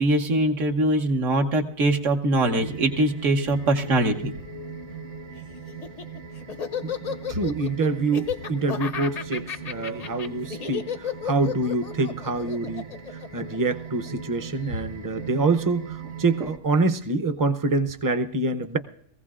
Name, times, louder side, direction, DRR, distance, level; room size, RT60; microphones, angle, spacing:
voice 1, 0.0-4.3, right 1 dB, 80° right, 3 dB, 1.4 m, -22 dB
sound 1, 2.4-16.6, right 5 dB, 65° right, 1.9 m, -39 dB
Laughter, 5.7-14.1, left 7 dB, 50° left, 0.5 m, -33 dB
voice 2, 7.3-12.8 13.1-18.8, right 3 dB, 25° right, 9 dB, 0.4 m, -26 dB
22.5 x 15.5 x 2.4 m, 0.66 s
omnidirectional pair, 1.3 m